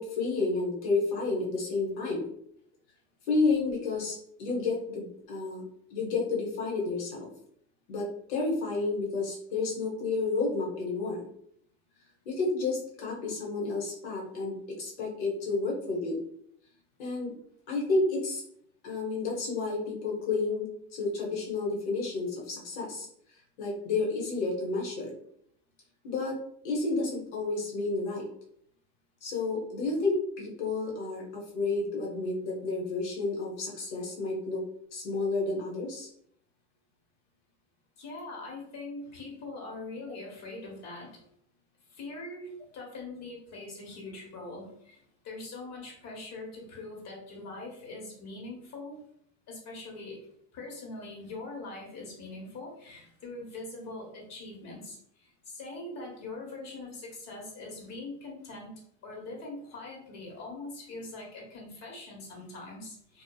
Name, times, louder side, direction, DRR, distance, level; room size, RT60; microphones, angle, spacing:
voice 1, 0.0-2.3 3.3-5.6 5.9-7.3 7.9-11.2 12.2-16.2 17.0-17.3 17.7-18.4 18.8-23.1 23.6-25.2 26.0-26.4 26.6-28.3 29.2-34.6 34.9-36.1, left 3 dB, 90° left, -2 dB, 1.0 m, -31 dB
voice 2, 38.0-41.3 41.9-45.0 45.2-49.0 49.5-50.3 50.5-58.7 59.0-63.2, left 2 dB, 55° left, -1 dB, 1.2 m, -42 dB
2.6 x 2.3 x 2.3 m, 0.69 s
supercardioid pair, 95°, 33 cm